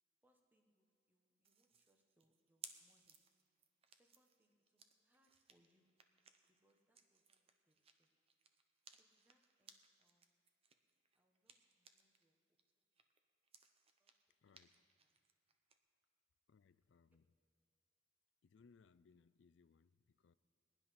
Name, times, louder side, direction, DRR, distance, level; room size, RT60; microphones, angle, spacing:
voice 1, 0.2-3.2 3.9-5.9 6.5-8.1 8.9-10.3 11.1-12.9 14.0-14.1 14.5-14.7 15.0-15.2 17.1-17.2, equal, 10° right, 3 dB, 1.2 m, -81 dB
sound 1, 1.4-12.2 12.6-15.8, right 6 dB, 30° right, 0.7 m, -64 dB
voice 2, 14.4-14.8 16.5-17.3 18.4-20.4, left 5 dB, 70° left, 16 dB, 0.4 m, -69 dB
18.5 x 10.5 x 5.8 m, 2.4 s
head